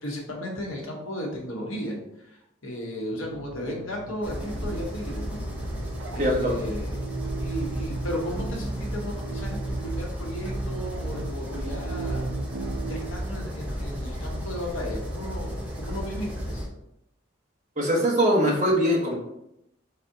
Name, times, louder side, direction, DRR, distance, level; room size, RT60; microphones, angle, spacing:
voice 1, 0.0-5.4 6.1-7.0 7.4-12.3 12.9-16.7, equal, 75° left, -1 dB, 1.1 m, -35 dB
sound 1, 3.2-13.3, right 3 dB, 80° right, 0.5 m, -36 dB
sound 2, 4.2-16.7, equal, 5° right, 0.7 m, -34 dB
voice 2, 6.2-6.5 17.8-19.1, equal, 35° right, -3 dB, 1.1 m, -22 dB
4.1 x 4.1 x 2.7 m, 0.82 s
head